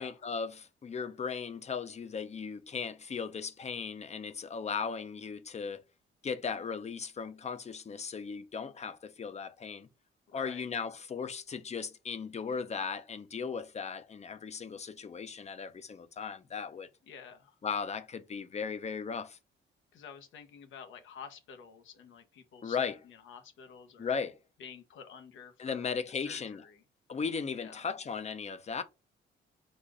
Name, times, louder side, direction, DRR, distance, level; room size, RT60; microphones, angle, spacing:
voice 1, 0.0-5.8 6.2-9.9 10.3-16.9 17.6-19.4 22.6-23.0 24.0-24.4 25.6-26.6 27.1-28.8, left 6 dB, 35° left, 0.7 m, -37 dB
voice 2, 10.3-10.7 17.0-17.6 19.9-24.1 24.6-26.8 27.5-27.9, left 7 dB, 75° left, 1.0 m, -50 dB
4.2 x 2.5 x 4.8 m
cardioid pair, 90°, 20 cm